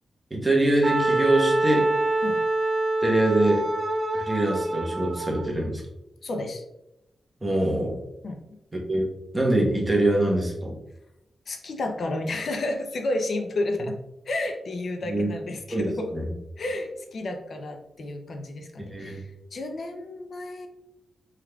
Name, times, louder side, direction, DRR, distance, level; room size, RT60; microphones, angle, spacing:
voice 1, 0.3-1.9 3.0-3.6 4.1-5.8 7.4-8.0 8.9-9.1 9.3-10.8 15.1-15.3 15.7-15.9 16.1-16.3 18.8-19.2, right 1 dB, 20° right, -1 dB, 1.1 m, -24 dB
Wind instrument woodwind instrument, 0.8-5.5, right 2 dB, 45° right, 1.3 m, -25 dB
voice 2, 6.2-6.6 8.2-8.4 11.5-14.0 14.3-16.2 16.6-20.7, left 2 dB, 65° left, 5 dB, 0.5 m, -31 dB
4.7 x 3.6 x 2.3 m, 0.87 s
cardioid pair, 85°, 0 cm